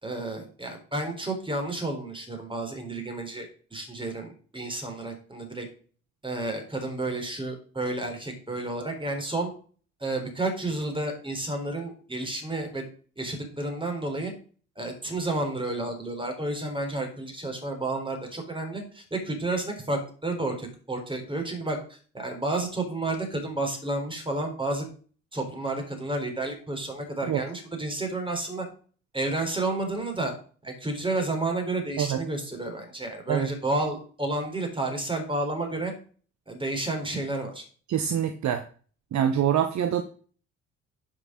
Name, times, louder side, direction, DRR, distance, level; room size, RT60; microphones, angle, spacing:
voice 1, 0.0-5.7 6.2-9.5 10.0-12.8 13.2-14.3 14.8-24.9 25.3-28.7 29.1-30.3 30.6-35.9 36.5-37.6, right 2 dB, 15° right, 3 dB, 4.2 m, -31 dB
voice 2, 37.9-38.6 39.1-40.0, right 9 dB, 50° right, 9 dB, 0.9 m, -25 dB
8.0 x 5.7 x 6.3 m, 0.42 s
hypercardioid pair, 55°, 37 cm